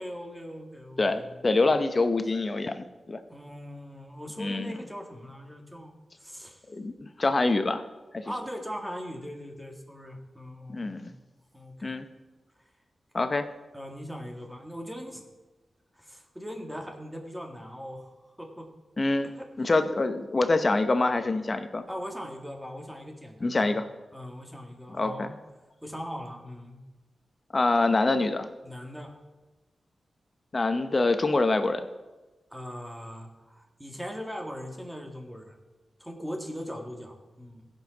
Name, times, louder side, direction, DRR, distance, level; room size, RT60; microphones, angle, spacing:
voice 1, 0.0-1.8 3.3-5.9 6.2-6.6 8.2-11.1 11.5-12.0 12.6-12.7 13.7-15.3 15.9-18.7 19.2-19.7 21.9-23.7 24.1-25.3 25.8-26.8 28.6-29.1 32.5-35.6 36.0-37.7, equal, 5° right, 1 dB, 2.1 m, -40 dB
voice 2, 1.0-3.2 4.4-4.7 6.7-7.8 8.1-8.2 10.7-11.1 11.8-12.1 13.1-13.5 19.0-19.3 19.6-21.8 23.4-23.8 24.9-25.3 27.5-28.5 30.5-31.8, left 2 dB, 45° left, 9 dB, 0.8 m, -25 dB
16.0 x 5.5 x 4.0 m, 1.1 s
cardioid pair, 50°, 0 cm